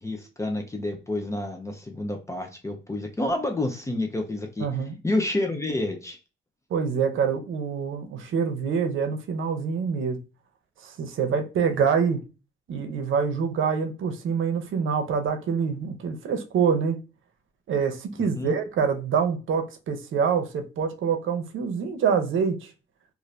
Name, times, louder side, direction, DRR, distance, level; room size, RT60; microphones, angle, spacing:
voice 1, 0.0-4.7 5.0-6.2 18.2-18.5, left 2 dB, 15° left, 0.4 m, -29 dB
voice 2, 4.6-5.0 6.7-10.2 10.8-12.2 12.7-17.0 17.7-22.7, right 6 dB, 85° right, 0.6 m, -26 dB
2.6 x 2.5 x 3.0 m
wide cardioid pair, 160°, 20 cm